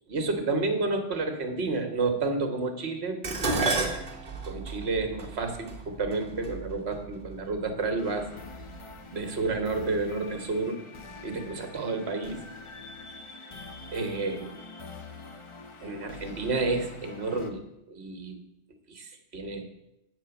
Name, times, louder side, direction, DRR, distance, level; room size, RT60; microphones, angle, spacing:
voice 1, 0.1-3.2 3.5-3.9 4.4-8.3 9.1-10.8 11.2-12.4 13.9-14.6 15.8-17.6 17.9-18.4 18.9-19.6, right 3 dB, 60° right, 6 dB, 1.4 m, -30 dB
Dishes pots and pans, 3.2-7.6 8.5-8.9 9.3-10.1 10.4-10.5, right 3 dB, 45° right, 1.3 m, -32 dB
sound 1, 8.0-17.5, left 3 dB, 35° left, 0.6 m, -45 dB
7.9 x 4.4 x 6.9 m, 0.86 s
omnidirectional pair, 1.2 m